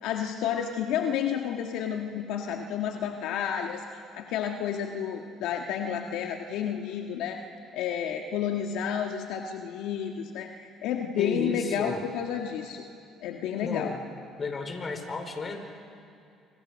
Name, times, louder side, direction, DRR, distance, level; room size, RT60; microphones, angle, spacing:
voice 1, 0.0-3.8 4.1-7.4 7.7-12.9 13.2-13.9, left 8 dB, 75° left, 3 dB, 1.7 m, -31 dB
voice 2, 11.2-12.0 13.6-14.0 14.4-15.6, left 3 dB, 35° left, 5 dB, 4.7 m, -33 dB
29.5 x 27.5 x 6.5 m, 2.5 s
supercardioid pair, 75°, 0 cm